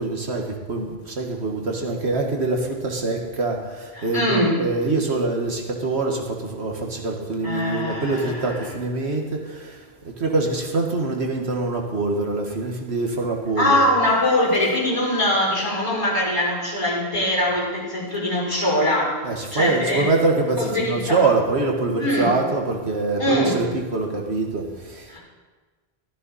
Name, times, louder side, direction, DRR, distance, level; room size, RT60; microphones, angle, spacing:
voice 1, 0.0-13.8 19.2-25.2, right 3 dB, 75° right, 1 dB, 1.9 m, -24 dB
voice 2, 4.0-4.6 7.4-8.5 13.6-19.2 19.5-20.1 20.6-21.2 22.0-22.3 23.2-23.6 25.1-25.2, left 1 dB, 25° left, -5 dB, 5.7 m, -22 dB
15.0 x 13.5 x 4.2 m, 1.4 s
omnidirectional pair, 1.1 m